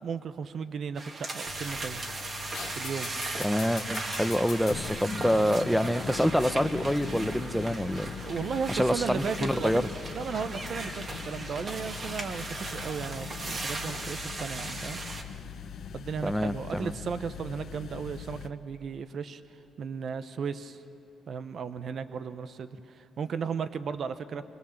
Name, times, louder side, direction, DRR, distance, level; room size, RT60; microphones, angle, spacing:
voice 1, 0.0-2.0 2.8-3.1 8.2-15.0 15.9-19.4 19.8-20.8 21.3-24.4, right 6 dB, 55° right, 11 dB, 0.9 m, -35 dB
sound 1, 1.0-15.2, right 2 dB, 40° right, 2.2 m, -38 dB
sound 2, 1.5-18.5, left 7 dB, 65° left, 0.9 m, -41 dB
voice 2, 3.4-8.1 8.7-9.8 16.2-16.9, equal, ahead, 13 dB, 0.8 m, -26 dB
23.5 x 22.5 x 7.3 m, 2.5 s
cardioid pair, 90°, 0 cm